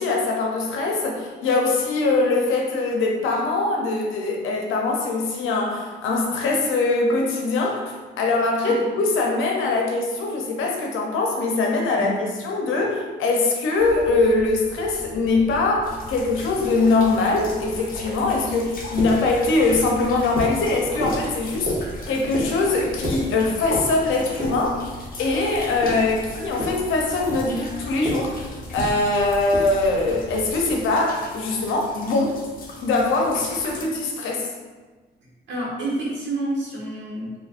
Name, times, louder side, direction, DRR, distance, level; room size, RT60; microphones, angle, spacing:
voice 1, 0.0-21.7 22.1-24.9 25.2-32.4 32.8-34.5, left 3 dB, 85° left, 0 dB, 0.7 m, -22 dB
sound 1, 13.8-30.8, equal, 30° right, 1.4 m, -34 dB
sound 2, 15.8-33.8, left 2 dB, 45° left, 0.7 m, -40 dB
voice 2, 35.5-37.5, right 1 dB, 65° right, -5 dB, 1.3 m, -29 dB
4.1 x 2.7 x 2.5 m, 1.3 s
cardioid pair, 90°, 20 cm